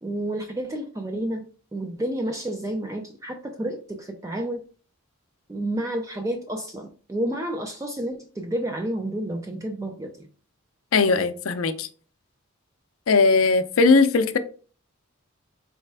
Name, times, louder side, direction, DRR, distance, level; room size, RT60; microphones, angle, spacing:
voice 1, 0.0-4.6 5.5-10.3, right 1 dB, 15° right, 0.3 m, -30 dB
voice 2, 10.9-11.9 13.1-14.4, left 4 dB, 70° left, 0.5 m, -19 dB
4.1 x 3.2 x 3.3 m
head